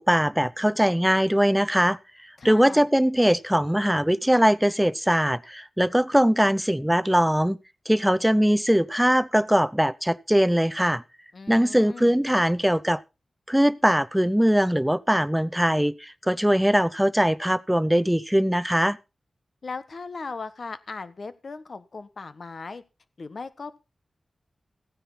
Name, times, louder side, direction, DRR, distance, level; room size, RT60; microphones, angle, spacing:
voice 1, 0.0-2.0 2.4-7.6 7.9-11.0 11.5-13.0 13.5-19.0, equal, 5° right, 0.7 m, -21 dB
voice 2, 2.4-2.8 11.3-12.2 19.6-22.8 23.2-23.8, left 4 dB, 65° left, 1.4 m, -38 dB
16.0 x 10.0 x 4.1 m
cardioid pair, 50°, 0 cm